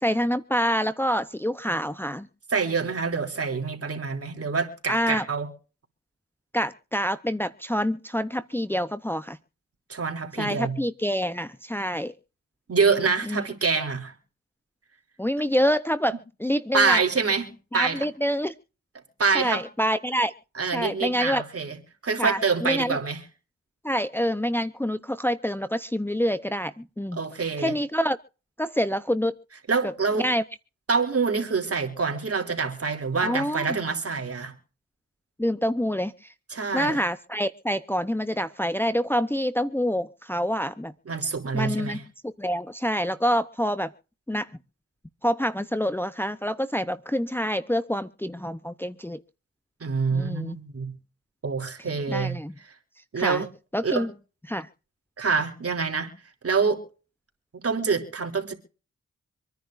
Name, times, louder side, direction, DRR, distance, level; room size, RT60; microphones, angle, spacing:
voice 1, 0.0-2.3 4.9-5.2 6.5-9.4 10.4-12.1 13.3-13.4 15.2-17.0 17.7-18.5 19.3-20.3 20.7-21.4 22.2-23.0 23.8-27.2 27.6-28.2 28.6-29.3 30.1-30.4 33.2-33.8 35.4-36.3 36.7-40.9 41.5-43.9 44.3-44.5 45.2-49.2 50.1-50.6 52.1-52.5 53.2-53.4 53.7-54.1 54.5-54.7, equal, 5° left, 0.8 m, -26 dB
voice 2, 2.5-5.5 9.9-10.8 12.7-14.1 16.7-18.1 19.2-19.6 20.5-21.8 22.0-23.2 27.1-27.8 29.7-30.3 30.9-34.5 36.5-37.0 41.0-42.0 49.8-50.9 51.4-52.4 53.1-53.5 53.8-54.1 55.2-56.1 56.4-56.8 57.5-58.5, right 5 dB, 50° right, 3.2 m, -26 dB
26.0 x 10.5 x 2.6 m
cardioid pair, 55°, 29 cm